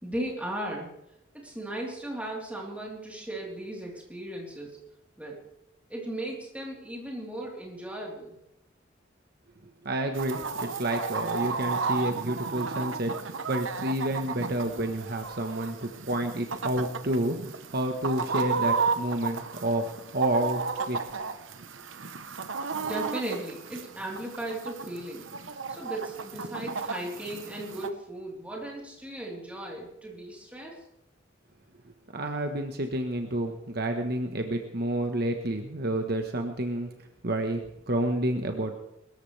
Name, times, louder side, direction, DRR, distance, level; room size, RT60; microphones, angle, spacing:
voice 1, 0.0-0.9 1.4-4.8 5.2-5.4 5.9-8.4 22.7-25.3 25.7-30.8, right 1 dB, 5° right, -2 dB, 3.8 m, -36 dB
voice 2, 9.8-21.0 32.1-36.9 37.2-38.7, right 1 dB, 55° right, 5 dB, 1.4 m, -30 dB
Chicken rooster, 10.1-27.9, right 5 dB, 80° right, 1.1 m, -33 dB
22.5 x 14.0 x 3.4 m, 0.83 s
head